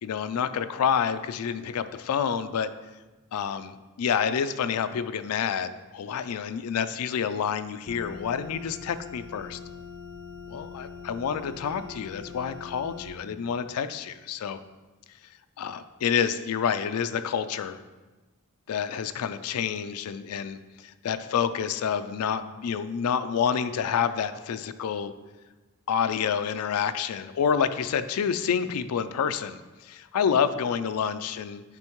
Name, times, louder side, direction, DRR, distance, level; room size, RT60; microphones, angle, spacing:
voice 1, 0.0-2.7 3.3-9.6 10.5-14.6 15.6-17.8 18.7-25.1 25.9-31.6, left 7 dB, 80° left, 11 dB, 0.4 m, -28 dB
sound 1, 7.9-13.1, left 5 dB, 5° left, 0.5 m, -42 dB
9.7 x 4.5 x 3.0 m, 1.2 s
head